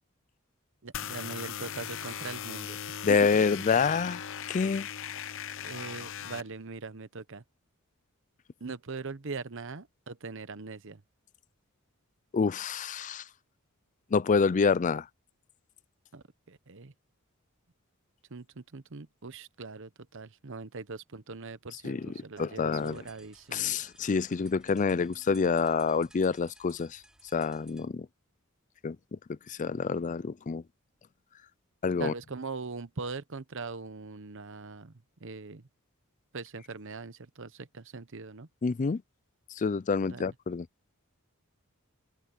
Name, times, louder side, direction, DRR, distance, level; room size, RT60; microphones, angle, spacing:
voice 1, 0.8-3.2 5.6-7.4 8.6-11.0 16.1-16.9 18.3-23.7 32.0-34.9 35.2-35.7 36.3-38.5 40.1-40.2, right 4 dB, 60° right, 1.0 m, -41 dB
sound 1, 0.9-6.4, left 9 dB, 65° left, 0.8 m, -38 dB
voice 2, 3.0-4.9 12.3-13.2 14.1-15.1 21.8-22.1 22.4-23.0 23.5-27.0 27.3-28.1 28.8-29.0 29.5-30.6 31.8-32.1 38.6-39.0 39.5-40.7, left 5 dB, 35° left, 0.4 m, -27 dB
sound 2, 22.7-27.9, right 1 dB, 5° right, 3.2 m, -58 dB
open air
head